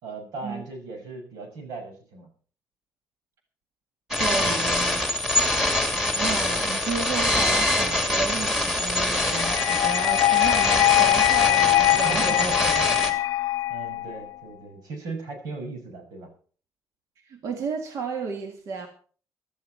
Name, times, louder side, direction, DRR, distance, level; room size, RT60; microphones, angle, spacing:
voice 1, 0.0-2.3 11.7-13.2 13.7-16.3, right 3 dB, 90° right, 6.0 m, -37 dB
sound 1, 4.1-13.1, left 1 dB, 5° right, 2.5 m, -24 dB
voice 2, 4.2-5.1 6.2-12.5 17.2-18.9, right 5 dB, 55° right, 1.8 m, -33 dB
sound 2, 9.3-14.3, left 16 dB, 65° left, 0.6 m, -22 dB
16.0 x 12.5 x 4.3 m
cardioid pair, 175°, 6 cm